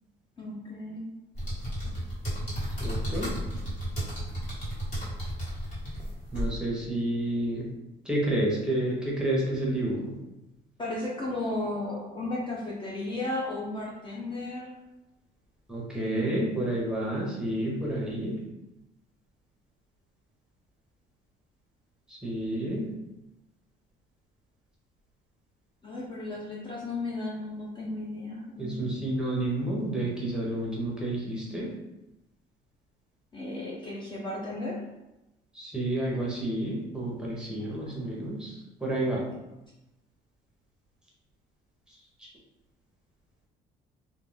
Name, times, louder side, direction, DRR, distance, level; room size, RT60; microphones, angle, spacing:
voice 1, 0.4-1.1 10.8-14.7 25.8-29.1 33.3-34.8 37.6-38.1, left 2 dB, 30° left, -4 dB, 0.5 m, -35 dB
sound 1, 1.3-6.5, equal, 45° left, 1.4 m, -33 dB
voice 2, 2.8-3.3 6.3-7.7 8.0-10.2 15.7-18.4 22.1-22.9 28.6-31.7 35.5-39.3 41.9-42.3, right 1 dB, 5° right, -4 dB, 0.8 m, -30 dB
2.4 x 2.1 x 3.2 m, 0.95 s
cardioid pair, 110°, 17 cm